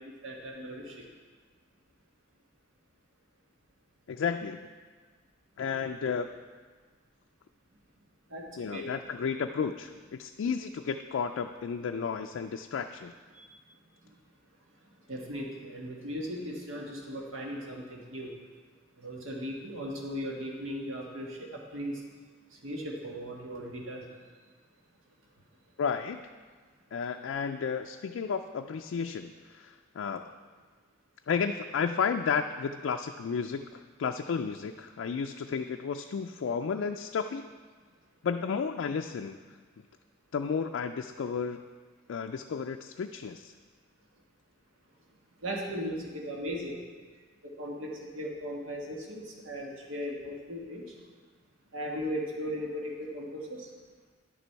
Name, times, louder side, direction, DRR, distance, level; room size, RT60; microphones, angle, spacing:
voice 1, 0.2-1.0 8.3-8.9 13.3-13.6 15.1-18.3 19.0-22.0 22.6-24.0 45.4-46.8 47.4-50.8 51.7-53.7, equal, 80° right, -1 dB, 1.5 m, -37 dB
voice 2, 4.1-4.6 5.6-6.3 8.6-13.1 25.8-26.2 26.9-30.4 31.3-37.5 38.2-39.4 40.3-41.6 42.1-43.5, left 6 dB, 70° left, 5 dB, 0.3 m, -32 dB
11.0 x 6.8 x 4.5 m, 1.5 s
head